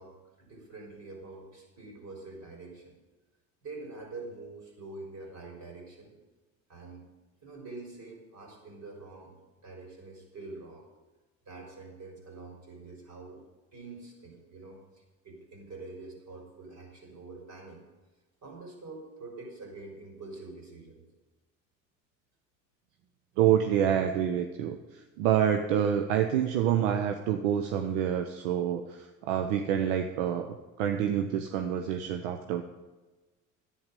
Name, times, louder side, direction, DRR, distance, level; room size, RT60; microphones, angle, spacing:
voice 1, 0.0-3.0 3.6-6.2 6.7-7.1 7.4-9.4 9.6-10.9 11.5-13.4 13.7-17.8 18.4-21.0, right 3 dB, 45° right, 2 dB, 4.2 m, -45 dB
voice 2, 23.4-32.6, right 9 dB, 80° right, 6 dB, 0.8 m, -27 dB
10.5 x 9.0 x 5.3 m, 1.2 s
hypercardioid pair, 65°, 38 cm